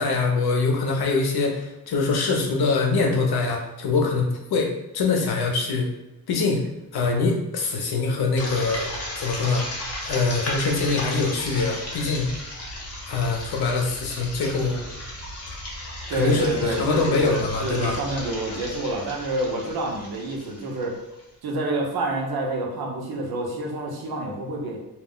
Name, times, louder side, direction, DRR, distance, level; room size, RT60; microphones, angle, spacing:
voice 1, 0.0-5.9 6.3-6.6 6.9-8.9 9.2-9.7 10.1-12.3 13.1-14.8 16.1-18.0, left 4 dB, 85° left, 1 dB, 0.7 m, -23 dB
sound 1, 8.4-21.2, left 1 dB, 40° left, 0.8 m, -35 dB
voice 2, 16.1-21.0 21.4-24.8, right 2 dB, 80° right, -1 dB, 0.8 m, -28 dB
2.4 x 2.1 x 3.7 m, 0.95 s
wide cardioid pair, 150°, 37 cm